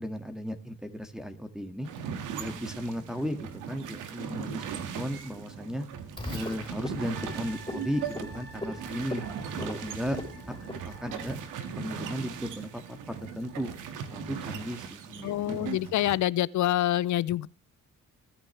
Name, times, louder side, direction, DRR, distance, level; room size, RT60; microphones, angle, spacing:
voice 1, 0.0-1.9 2.4-3.4 3.7-5.9 6.3-9.2 9.6-10.2 10.5-10.6 10.9-11.4 11.8-12.8 13.1-13.7 14.1-15.7, equal, ahead, 1.9 m, -35 dB
sound 1, 1.8-16.2, right 7 dB, 90° right, 2.0 m, -39 dB
Frog, 6.2-11.4, left 2 dB, 15° left, 4.3 m, -41 dB
sound 2, 7.1-14.4 14.8-14.9, right 2 dB, 35° right, 7.5 m, -51 dB
voice 2, 15.2-17.5, left 13 dB, 70° left, 0.6 m, -26 dB
21.0 x 10.0 x 3.3 m
cardioid pair, 90°, 30 cm